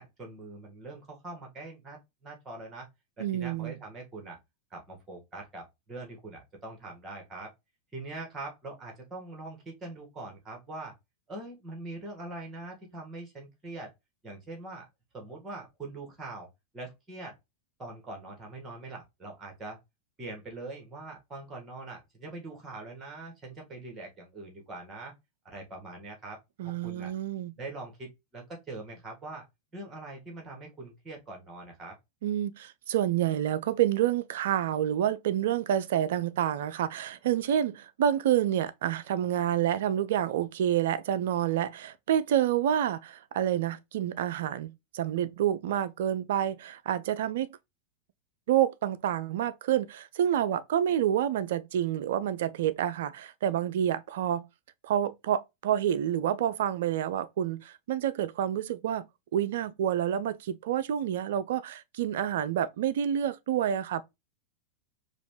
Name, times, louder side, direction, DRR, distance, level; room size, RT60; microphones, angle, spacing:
voice 1, 0.0-2.9 3.2-4.4 4.7-7.5 7.9-10.9 11.3-13.9 14.2-14.9 15.1-16.5 16.7-17.3 17.8-19.8 20.2-25.1 25.4-26.4 26.6-27.1 27.6-29.4 29.7-31.9, right 2 dB, 20° right, 1.5 m, -43 dB
voice 2, 3.2-3.8 26.6-27.5 32.2-47.5 48.5-54.5 54.8-59.1 59.3-64.0, right 10 dB, 55° right, 0.3 m, -28 dB
4.9 x 2.4 x 3.1 m
figure-of-eight pair, 90°, 0 cm